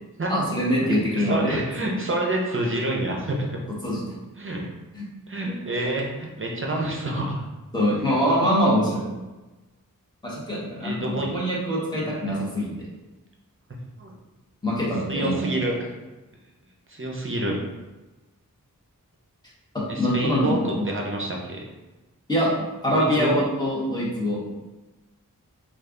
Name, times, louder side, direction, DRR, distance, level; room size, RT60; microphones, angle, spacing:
voice 1, 0.3-1.6 3.7-4.0 4.9-5.0 7.7-9.0 10.2-12.7 14.6-15.4 19.7-20.9 22.3-22.5 22.8-24.4, equal, 10° left, -6 dB, 1.2 m, -24 dB
voice 2, 0.8-3.6 4.4-4.7 5.3-7.4 10.8-11.3 12.0-12.1 14.0-14.1 15.1-15.7 16.9-17.6 19.9-21.6 22.9-23.4, right 1 dB, 35° right, -1 dB, 0.7 m, -28 dB
3.2 x 2.4 x 3.7 m, 1.1 s
wide cardioid pair, 65°, 34 cm